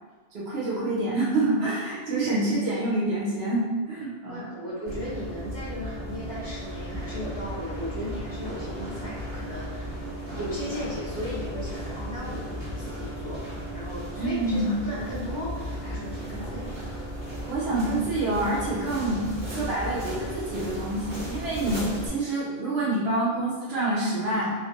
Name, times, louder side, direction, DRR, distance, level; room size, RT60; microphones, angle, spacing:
voice 1, 0.3-4.4 14.2-14.7 17.5-24.5, right 2 dB, 90° right, -8 dB, 1.1 m, -27 dB
voice 2, 4.3-10.0 10.3-13.4 13.7-16.7 19.2-19.8, left 1 dB, 20° right, -10 dB, 1.0 m, -36 dB
sound 1, 4.9-22.1, equal, 70° right, 1.6 m, -35 dB
4.5 x 2.1 x 2.9 m, 1.5 s
omnidirectional pair, 1.0 m